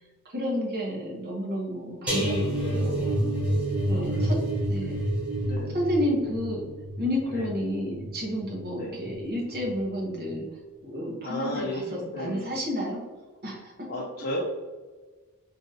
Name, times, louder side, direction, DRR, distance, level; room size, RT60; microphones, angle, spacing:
voice 1, 0.3-3.2 3.9-4.4 4.7-5.0 5.7-6.7 7.0-10.5 10.8-13.0 13.4-13.7, equal, 45° right, -2 dB, 0.9 m, -31 dB
sound 1, 2.1-9.1 9.5-9.8 10.1-10.2, right 1 dB, 5° right, 0.8 m, -29 dB
voice 2, 3.9-4.4 4.8-4.9 5.4-5.7 7.3-7.5 8.7-9.0 11.2-12.6 13.9-14.4, left 1 dB, 40° left, -3 dB, 0.5 m, -34 dB
3.7 x 2.7 x 2.7 m, 1.3 s
head